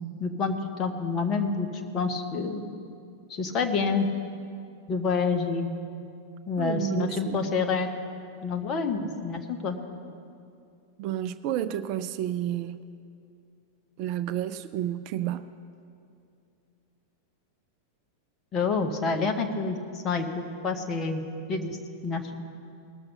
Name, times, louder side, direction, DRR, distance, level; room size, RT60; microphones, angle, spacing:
voice 1, 0.2-1.7 1.9-2.6 3.3-4.1 4.9-5.7 6.5-7.9 8.4-9.8 18.5-21.2 21.5-21.8 22.0-22.3, left 4 dB, 30° left, 4 dB, 1.2 m, -28 dB
voice 2, 6.6-7.4 11.0-12.8 14.0-15.5, right 11 dB, 45° right, 12 dB, 0.4 m, -31 dB
19.5 x 6.7 x 5.7 m, 2.5 s
figure-of-eight pair, 90°, 0 cm